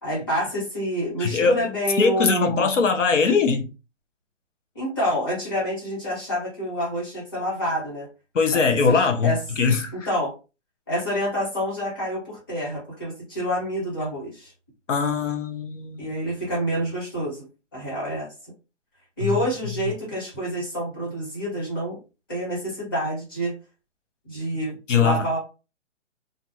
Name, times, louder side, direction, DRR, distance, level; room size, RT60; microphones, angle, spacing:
voice 1, 0.0-2.7 4.7-8.1 8.5-9.4 10.1-10.3 10.9-14.5 16.0-17.5 17.7-18.3 19.2-22.0 22.3-23.6 24.2-25.4, equal, 20° left, 1.0 m, -28 dB
voice 2, 1.2-1.7 2.0-3.7 8.3-10.1 14.9-16.2 19.2-19.4 24.9-25.2, left 5 dB, 80° left, 0.8 m, -21 dB
2.5 x 2.2 x 2.7 m
hypercardioid pair, 175°, 36 cm